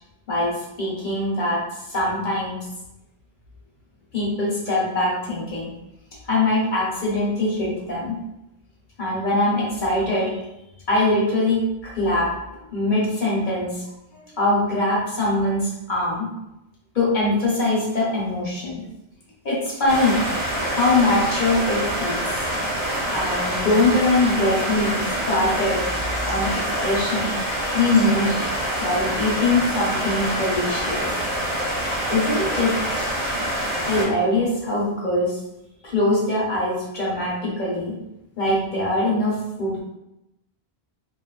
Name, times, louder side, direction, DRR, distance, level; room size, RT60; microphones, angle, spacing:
voice 1, 0.3-2.6 4.1-5.7 6.2-8.2 9.0-10.4 10.9-12.3 12.7-13.8 14.1-16.3 16.9-18.8 19.4-20.3 20.7-22.5 23.1-25.8 26.3-27.4 27.7-28.5 28.8-31.2 32.1-33.0 33.8-35.4 35.8-37.9 38.4-39.8, left 2 dB, 50° left, -5 dB, 0.8 m, -22 dB
sound 1, 19.9-34.0, right 1 dB, 40° right, 0.9 m, -26 dB
2.5 x 2.3 x 2.2 m, 0.89 s
omnidirectional pair, 1.1 m